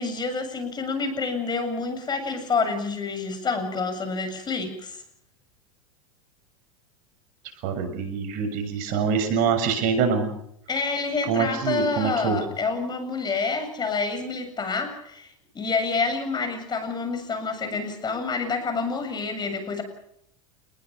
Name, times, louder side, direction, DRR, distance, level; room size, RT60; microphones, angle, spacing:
voice 1, 0.0-5.0 10.7-19.8, left 4 dB, 25° left, 9 dB, 7.4 m, -28 dB
voice 2, 7.6-10.3 11.3-12.4, right 6 dB, 55° right, 8 dB, 7.1 m, -25 dB
29.5 x 20.5 x 5.8 m, 0.73 s
hypercardioid pair, 105°, 17 cm